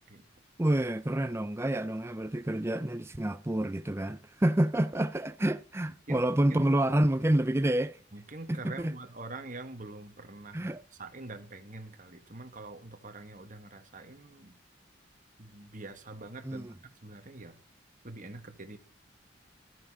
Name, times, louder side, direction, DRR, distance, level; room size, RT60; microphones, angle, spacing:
voice 1, 0.6-8.0 8.5-9.0 10.5-10.8 16.4-16.8, right 1 dB, 15° right, 0.5 m, -28 dB
voice 2, 8.1-10.7 11.0-14.5 15.4-16.7 17.0-17.6 18.0-18.8, right 2 dB, 45° right, 1.7 m, -44 dB
13.5 x 9.1 x 6.1 m
head